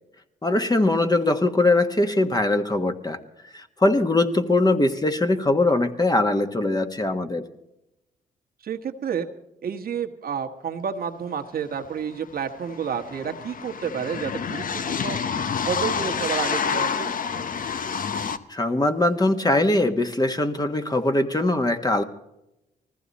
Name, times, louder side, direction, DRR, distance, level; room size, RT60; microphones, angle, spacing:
voice 1, 0.4-3.2 3.5-7.4 18.5-22.0, left 2 dB, 20° left, 6 dB, 1.5 m, -21 dB
voice 2, 8.6-9.3 9.6-15.2 15.6-17.1, right 7 dB, 60° right, 4 dB, 1.3 m, -30 dB
sound 1, 11.8-11.9 12.1-18.4, left 6 dB, 50° left, 0.9 m, -28 dB
19.5 x 15.0 x 4.2 m, 0.87 s
supercardioid pair, 55°, 18 cm